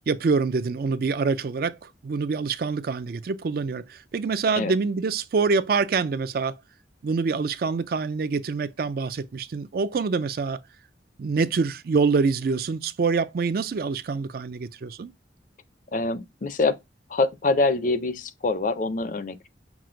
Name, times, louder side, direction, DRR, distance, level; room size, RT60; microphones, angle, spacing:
voice 1, 0.1-6.5 7.0-10.6 11.2-15.1, right 4 dB, 55° right, 0.4 m, -25 dB
voice 2, 15.9-16.8 17.1-19.5, left 3 dB, 45° left, 0.5 m, -25 dB
6.0 x 2.0 x 3.7 m
head